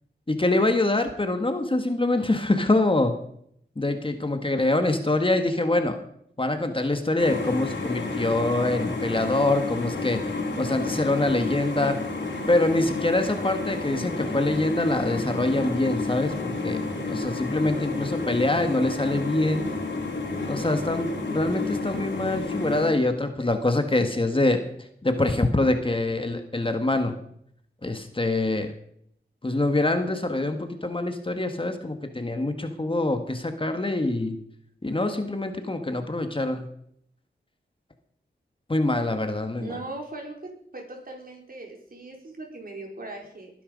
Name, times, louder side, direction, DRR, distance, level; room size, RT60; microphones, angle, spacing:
voice 1, 0.3-3.1 3.8-6.0 6.4-10.2 10.6-12.0 12.5-19.7 20.5-24.6 25.0-27.1 27.8-28.7 29.4-34.4 34.8-36.6 38.7-39.8, left 2 dB, 30° left, 7 dB, 1.8 m, -25 dB
sound 1, 7.2-22.9, left 3 dB, 80° left, 4.3 m, -31 dB
voice 2, 39.6-40.3 40.7-43.5, right 2 dB, 50° right, 1 dB, 4.8 m, -39 dB
20.5 x 10.5 x 5.4 m, 0.68 s
wide cardioid pair, 75°, 19 cm